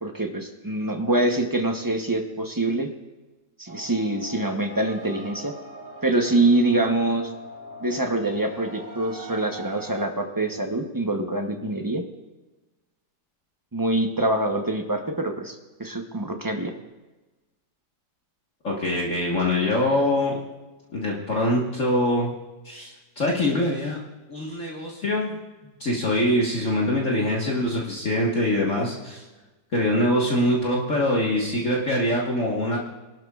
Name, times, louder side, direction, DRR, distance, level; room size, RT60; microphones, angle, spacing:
voice 1, 0.0-2.9 3.6-5.5 6.0-7.3 7.8-12.0 13.7-15.5 15.8-16.7, right 2 dB, 20° right, 4 dB, 0.5 m, -25 dB
sound 1, 3.7-10.1, equal, 75° right, 1.9 m, -41 dB
voice 2, 18.6-20.4 20.9-22.3 22.7-22.9 23.2-24.0 24.3-25.4 25.8-29.2 29.7-32.8, left 1 dB, 45° left, -3 dB, 1.8 m, -23 dB
24.5 x 12.0 x 2.4 m, 1.2 s
omnidirectional pair, 1.9 m